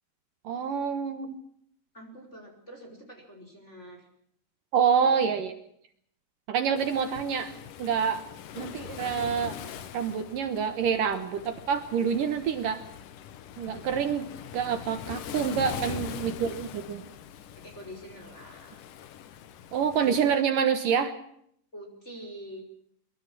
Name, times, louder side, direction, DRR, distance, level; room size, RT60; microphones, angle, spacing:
voice 1, 0.4-1.4 4.7-5.5 6.5-7.5 7.8-8.2 8.6-9.6 9.9-12.8 13.6-14.3 14.5-17.0 19.7-21.1, right 7 dB, 80° right, 10 dB, 1.9 m, -27 dB
voice 2, 1.9-4.1 5.0-5.2 15.7-16.0 17.5-18.8 21.7-22.6, equal, 15° left, 3 dB, 4.9 m, -45 dB
Waves surf, 6.8-20.4, left 9 dB, 85° left, 1.8 m, -42 dB
23.0 x 23.0 x 6.1 m, 0.69 s
omnidirectional pair, 5.9 m